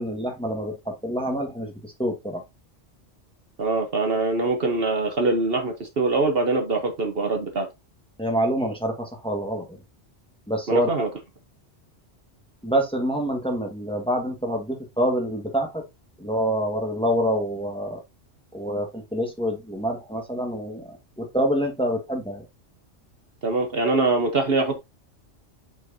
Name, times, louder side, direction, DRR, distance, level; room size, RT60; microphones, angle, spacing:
voice 1, 0.0-2.4 8.2-9.8 10.5-10.9 12.6-15.8 16.2-18.0 18.5-20.8 21.2-22.4, equal, 5° left, 1 dB, 1.6 m, -26 dB
voice 2, 3.6-7.7 10.7-11.1 23.4-24.8, right 3 dB, 55° right, 4 dB, 1.4 m, -23 dB
8.4 x 4.6 x 2.8 m, 0.22 s
omnidirectional pair, 1.2 m